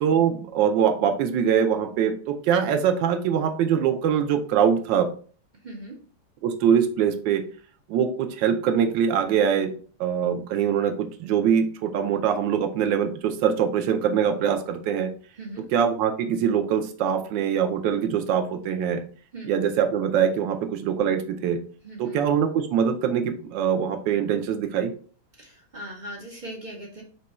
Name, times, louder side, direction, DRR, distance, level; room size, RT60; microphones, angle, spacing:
voice 1, 0.0-5.1 6.4-7.4 7.9-9.7 10.0-15.1 15.7-19.0 19.5-21.6 22.0-24.9, right 8 dB, 80° right, 6 dB, 1.3 m, -23 dB
voice 2, 5.6-6.0 15.4-15.7 19.3-19.5 21.8-22.2 25.4-27.0, right 1 dB, 50° right, -2 dB, 0.5 m, -39 dB
5.1 x 2.3 x 4.2 m, 0.42 s
omnidirectional pair, 2.0 m